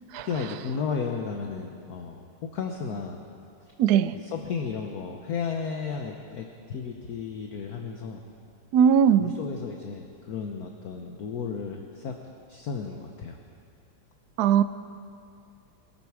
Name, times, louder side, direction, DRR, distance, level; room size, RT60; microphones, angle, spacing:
voice 1, 0.2-2.2 2.5-3.2 4.1-8.2 9.2-12.2 12.5-13.4, left 5 dB, 55° left, 3 dB, 1.1 m, -33 dB
voice 2, 3.8-4.1 8.7-9.3 14.4-14.6, right 8 dB, 80° right, 12 dB, 0.8 m, -19 dB
22.0 x 13.0 x 4.8 m, 2.5 s
omnidirectional pair, 2.4 m